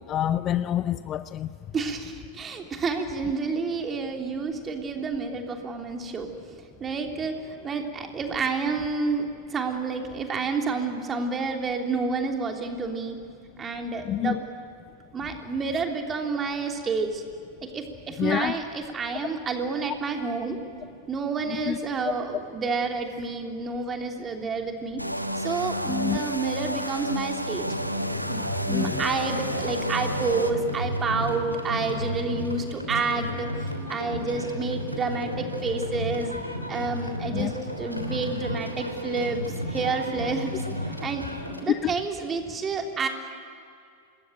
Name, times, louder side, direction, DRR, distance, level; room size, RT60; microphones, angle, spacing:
voice 1, 0.0-1.5 14.0-14.4 18.2-18.5 21.5-21.8 25.9-26.2 28.7-28.9 37.3-37.5 41.7-41.9, left 11 dB, 30° left, 14 dB, 0.6 m, -27 dB
voice 2, 1.7-6.3 6.8-13.2 13.6-14.4 15.1-17.2 17.7-20.6 21.1-25.0 25.4-27.7 28.3-33.5 33.9-36.3 36.7-37.5 37.8-39.4 39.7-40.5 40.9-43.1, right 4 dB, 20° right, 3 dB, 3.3 m, -29 dB
sound 1, 25.0-30.5, equal, 90° right, 1.3 m, -31 dB
sound 2, 27.6-41.6, equal, 90° left, 3.2 m, -33 dB
27.0 x 21.0 x 9.2 m, 2.4 s
figure-of-eight pair, 90°, 0 cm